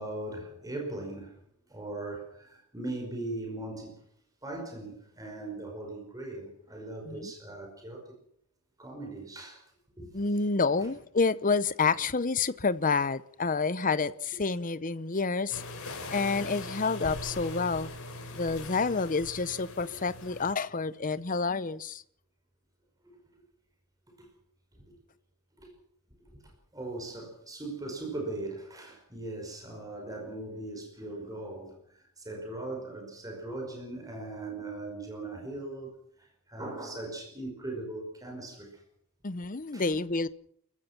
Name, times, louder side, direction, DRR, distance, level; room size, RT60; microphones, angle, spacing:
voice 1, 0.0-1.4 1.7-3.9 4.4-8.1 8.8-9.6 10.0-10.1 10.8-10.9 24.2-24.3 24.7-24.8 25.6-25.7 26.2-35.9 36.2-38.8 39.7-39.9, right 2 dB, 15° right, 5.3 m, -39 dB
voice 2, 10.1-15.6 16.1-17.9 18.3-22.0 39.2-40.3, left 4 dB, 35° left, 0.8 m, -29 dB
sound 1, 15.5-20.5, left 2 dB, 70° left, 5.3 m, -41 dB
29.0 x 15.0 x 6.0 m
head